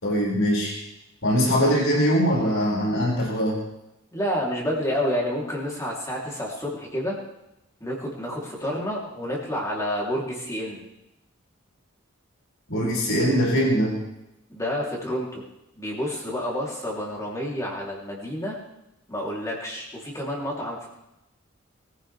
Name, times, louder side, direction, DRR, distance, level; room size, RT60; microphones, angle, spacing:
voice 1, 0.0-0.8 1.2-3.6 12.7-14.0, equal, 75° left, -4 dB, 5.9 m, -22 dB
voice 2, 4.1-7.2 7.8-10.9 14.5-15.4 15.8-18.6 19.1-20.9, equal, 15° left, -3 dB, 3.4 m, -29 dB
22.0 x 15.5 x 3.5 m, 0.90 s
head